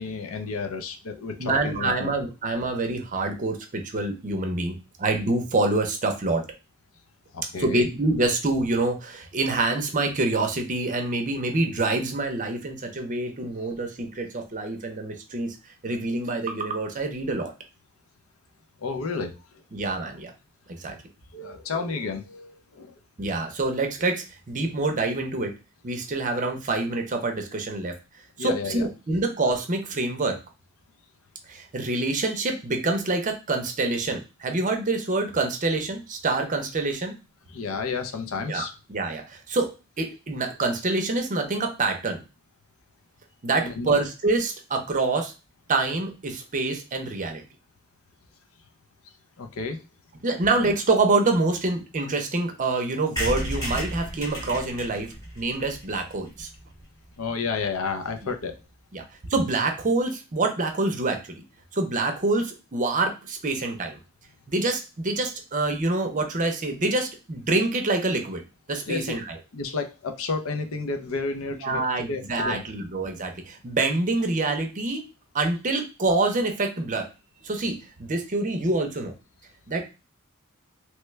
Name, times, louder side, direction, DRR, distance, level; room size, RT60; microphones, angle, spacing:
voice 1, 0.0-2.1 7.3-7.9 18.8-19.4 21.3-22.9 28.4-28.9 37.5-38.7 43.6-44.0 49.4-49.8 57.2-58.6 68.9-69.2 69.5-72.6, left 4 dB, 70° left, 6 dB, 0.5 m, -31 dB
voice 2, 1.4-6.4 7.6-15.6 15.8-17.5 19.7-20.3 20.8-21.0 23.2-25.5 25.8-27.9 28.4-30.4 31.5-37.1 38.5-38.6 38.9-39.7 40.0-42.2 43.4-45.3 45.7-47.4 50.2-55.1 55.4-56.5 58.9-59.0 59.3-61.2 61.7-64.0 64.5-68.4 68.7-69.2 71.6-75.0 75.3-77.1 77.4-79.1 79.7-79.8, right 2 dB, 35° right, 4 dB, 0.6 m, -26 dB
sound 1, 53.2-56.8 57.3-57.4 57.6-57.7 57.9-58.0 58.2-58.4, equal, 15° left, 1.0 m, -33 dB
3.1 x 2.2 x 3.1 m, 0.28 s
head